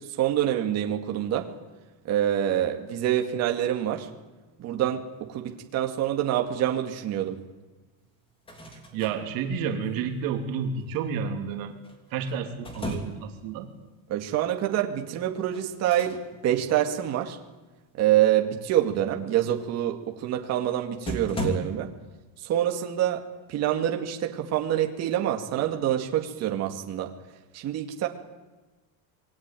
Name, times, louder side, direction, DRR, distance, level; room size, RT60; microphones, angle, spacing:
voice 1, 0.0-1.5 2.0-4.1 4.6-7.4 14.1-16.2 16.4-17.4 18.0-21.9 22.4-23.2 23.5-27.1 27.5-28.1, right 11 dB, 35° right, 3 dB, 2.2 m, -26 dB
sound 1, 8.3-9.2 11.8-13.4 15.5-16.2 16.5-16.7 20.5-20.6 21.1-21.6, left 1 dB, 10° left, 3.2 m, -34 dB
voice 2, 8.9-11.7 12.1-13.7, right 6 dB, 50° right, 4 dB, 3.1 m, -30 dB
27.0 x 21.0 x 9.1 m, 1.2 s
cardioid pair, 180°, 43 cm